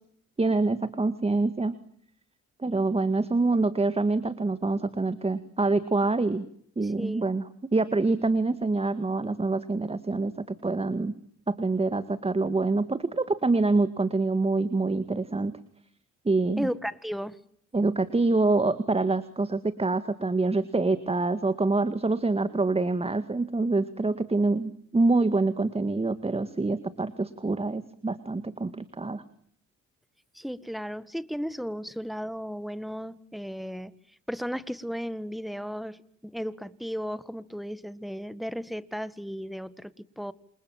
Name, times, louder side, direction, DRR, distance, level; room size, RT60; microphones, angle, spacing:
voice 1, 0.4-1.8 2.6-6.5 6.8-11.1 11.5-15.5 16.3-16.7 17.7-29.2, right 3 dB, 20° right, 13 dB, 2.0 m, -26 dB
voice 2, 6.8-7.3 16.6-17.4 30.3-33.9 34.3-40.3, equal, ahead, 16 dB, 1.8 m, -35 dB
28.5 x 27.5 x 7.4 m, 0.68 s
cardioid pair, 90°, 30 cm